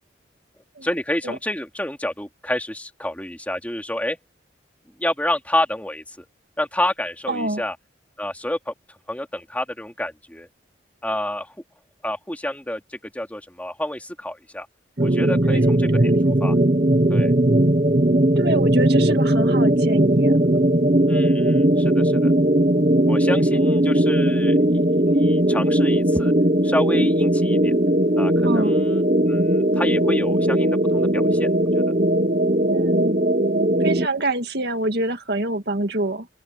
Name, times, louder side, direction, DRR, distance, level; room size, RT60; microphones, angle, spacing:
voice 1, 0.8-4.2 5.0-6.2 6.6-7.8 8.2-8.7 9.1-10.5 11.0-11.5 12.0-14.7 15.0-16.1 16.4-16.5 17.1-17.3 21.1-22.3 23.1-26.3 26.6-27.7 28.2-31.5 31.7-31.8, left 1 dB, 10° left, 2.9 m, -29 dB
voice 2, 7.3-7.6 15.5-16.1 18.4-20.4 28.4-28.7 32.7-33.2 33.8-36.3, right 2 dB, 60° right, 2.2 m, -26 dB
sound 1, 15.0-34.1, right 1 dB, 40° right, 1.3 m, -18 dB
open air
head